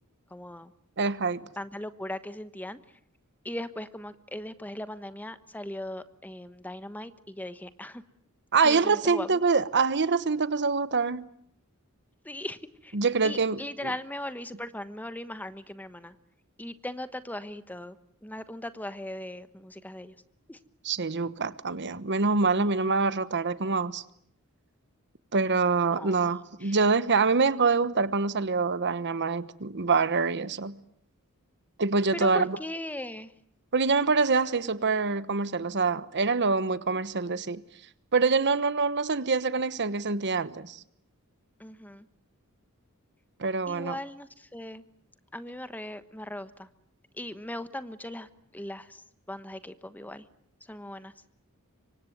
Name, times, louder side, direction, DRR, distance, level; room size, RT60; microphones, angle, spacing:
voice 1, 0.3-0.7 1.6-2.8 3.4-8.0 8.6-9.4 12.2-13.0 13.2-16.1 16.6-18.0 18.2-20.1 20.5-20.6 25.9-26.3 26.6-26.8 32.1-33.3 41.6-42.0 43.7-44.8 45.3-46.7 47.2-48.3 48.5-50.3 50.7-51.1, left 1 dB, 10° left, 1.2 m, -38 dB
voice 2, 1.0-1.4 8.5-11.3 12.9-13.9 20.8-24.0 25.3-30.8 31.8-32.6 33.7-37.6 38.1-40.8 43.4-44.0, right 4 dB, 55° right, 1.1 m, -25 dB
26.0 x 24.5 x 9.2 m
head